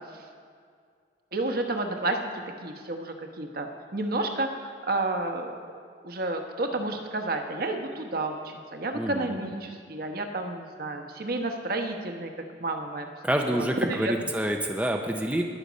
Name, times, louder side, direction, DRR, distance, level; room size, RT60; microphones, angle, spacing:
voice 1, 1.3-2.2 2.6-3.7 3.9-5.6 6.0-12.3 12.6-13.1 13.5-14.1, right 2 dB, 55° right, 4 dB, 1.1 m, -30 dB
voice 2, 8.9-9.4 13.2-15.4, right 1 dB, 5° right, 2 dB, 0.5 m, -27 dB
20.0 x 6.7 x 5.1 m, 2.1 s
head